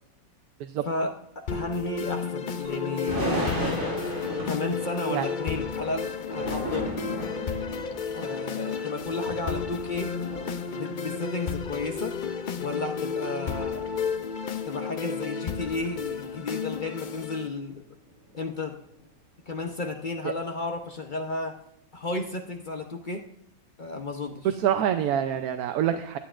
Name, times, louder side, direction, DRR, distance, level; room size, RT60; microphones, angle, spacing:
voice 1, 0.9-3.4 4.4-6.9 8.1-10.2 10.7-12.2 12.6-13.9 14.6-17.8 18.3-18.8 19.5-21.6 21.9-23.3 23.8-24.5, left 3 dB, 45° left, 4 dB, 0.7 m, -33 dB
sound 1, 1.5-17.5, left 5 dB, 75° left, 0.4 m, -32 dB
Chink clink, 2.6-7.1, left 8 dB, 25° left, 3.9 m, -44 dB
sound 2, 3.0-14.4 14.7-14.8 15.0-15.1 15.4-16.1 16.8-17.1 17.4-17.6 18.1-18.3 18.9-19.0, equal, 65° right, 6.1 m, -36 dB
voice 2, 24.5-26.2, right 10 dB, 80° right, 8 dB, 1.1 m, -26 dB
16.5 x 11.5 x 2.5 m, 0.72 s
omnidirectional pair, 1.6 m